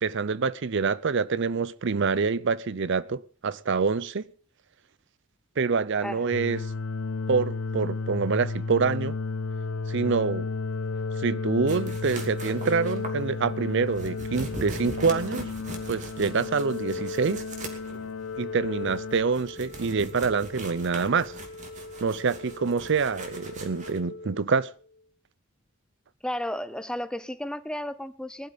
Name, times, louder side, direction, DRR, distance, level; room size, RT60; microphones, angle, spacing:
voice 1, 0.0-4.3 5.6-6.6 7.3-9.1 9.9-10.5 11.2-15.5 15.9-17.4 18.4-21.4 22.0-24.7, right 5 dB, 60° right, 0.6 m, -26 dB
sound 1, 6.3-19.2, left 4 dB, 75° left, 0.6 m, -33 dB
sound 2, 11.7-24.0, right 2 dB, 35° right, 2.7 m, -42 dB
Organ, 14.0-25.1, left 2 dB, 45° left, 1.4 m, -44 dB
voice 2, 26.2-28.5, left 1 dB, 5° left, 0.6 m, -33 dB
20.5 x 12.0 x 4.1 m
head